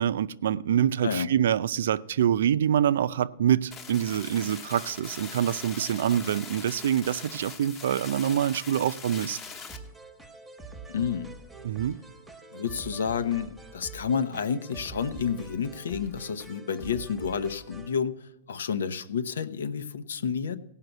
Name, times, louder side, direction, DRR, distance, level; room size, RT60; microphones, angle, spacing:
voice 1, 0.0-9.4 11.6-12.0, right 10 dB, 70° right, 0.5 m, -25 dB
sound 1, 3.7-9.8, left 5 dB, 15° left, 1.1 m, -42 dB
sound 2, 9.7-18.0, right 3 dB, 5° right, 1.1 m, -45 dB
voice 2, 10.9-11.3 12.5-20.6, left 7 dB, 90° left, 0.9 m, -30 dB
17.0 x 5.8 x 7.9 m
hypercardioid pair, 160°, 0 cm